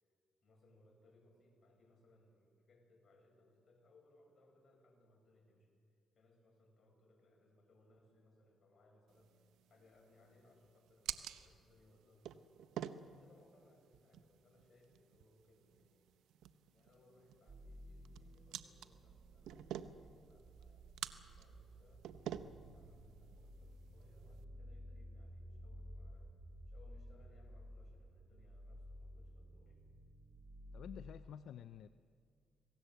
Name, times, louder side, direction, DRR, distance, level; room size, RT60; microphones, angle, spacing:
voice 1, 0.4-12.6 13.0-16.4 16.7-26.4 26.7-29.8, left 2 dB, 45° left, 1 dB, 7.6 m, -69 dB
sound 1, 9.1-24.4, right 10 dB, 85° right, 0.9 m, -51 dB
sound 2, 17.5-31.2, equal, 35° right, 3.7 m, -54 dB
voice 2, 30.7-31.9, left 9 dB, 70° left, 12 dB, 0.6 m, -50 dB
27.0 x 19.0 x 8.0 m, 2.2 s
cardioid pair, 90°, 0 cm